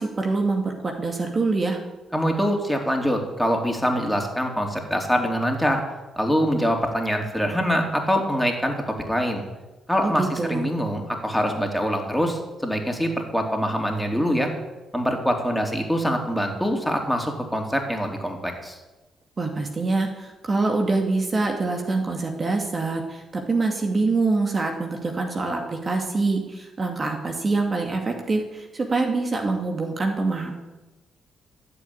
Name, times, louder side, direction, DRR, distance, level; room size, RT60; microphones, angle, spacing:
voice 1, 0.0-1.8 10.0-10.7 19.4-30.5, right 3 dB, 40° right, 2 dB, 2.3 m, -25 dB
voice 2, 2.1-5.8 6.2-9.4 9.9-14.5 14.9-18.8, equal, 5° left, 2 dB, 3.6 m, -24 dB
14.0 x 8.1 x 8.6 m, 1.1 s
hypercardioid pair, 45°, 0 cm